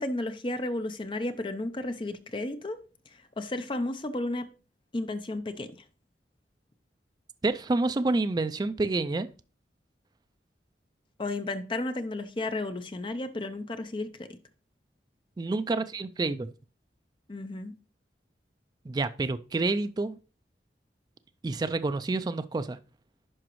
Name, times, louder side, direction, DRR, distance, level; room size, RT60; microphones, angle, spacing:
voice 1, 0.0-2.8 3.1-4.5 4.9-5.8 11.2-14.3 17.3-17.7, left 2 dB, 30° left, 0.6 m, -33 dB
voice 2, 7.4-9.3 15.4-16.5 18.9-20.2 21.4-22.8, right 3 dB, 25° right, 0.3 m, -28 dB
11.0 x 5.0 x 3.0 m
head